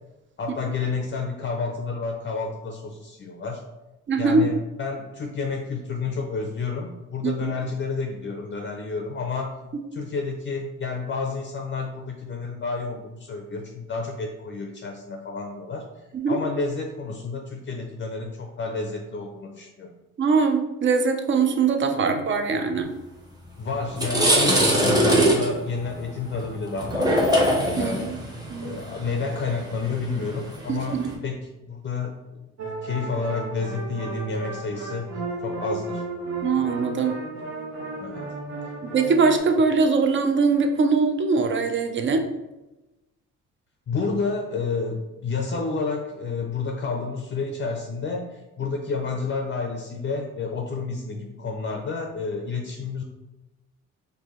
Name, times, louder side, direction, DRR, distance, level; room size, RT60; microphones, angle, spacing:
voice 1, 0.4-3.6 4.2-9.6 9.9-15.8 16.3-19.9 23.6-27.3 27.8-28.2 28.6-31.0 31.2-32.1 32.8-35.1 35.4-36.0 38.0-38.4 43.9-53.0, left 4 dB, 40° left, 2 dB, 0.5 m, -30 dB
voice 2, 4.1-4.5 7.2-7.5 16.1-16.4 20.2-22.9 27.8-28.2 28.5-28.8 30.7-31.1 36.4-37.2 38.8-42.2, right 4 dB, 40° right, 6 dB, 0.5 m, -22 dB
sound 1, 23.3-23.5 23.8-31.1, right 1 dB, 15° right, 0.8 m, -23 dB
sound 2, 32.6-39.4, right 3 dB, 65° right, 1.0 m, -34 dB
4.5 x 2.6 x 3.0 m, 1.0 s
cardioid pair, 90°, 30 cm